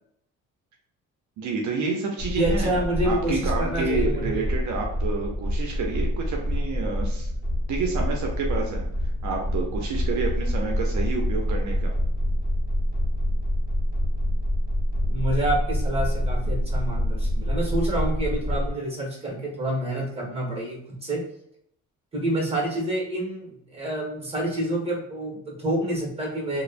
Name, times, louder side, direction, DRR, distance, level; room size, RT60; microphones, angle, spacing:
voice 1, 1.4-7.3 7.7-8.9 9.2-11.9, right 4 dB, 70° right, 0 dB, 0.6 m, -29 dB
sound 1, 2.2-18.7, left 1 dB, 30° left, 0.8 m, -26 dB
voice 2, 2.3-4.4 15.1-21.2 22.1-26.6, right 1 dB, 20° right, -1 dB, 1.3 m, -28 dB
3.1 x 2.1 x 2.4 m, 0.71 s
cardioid pair, 90°, 30 cm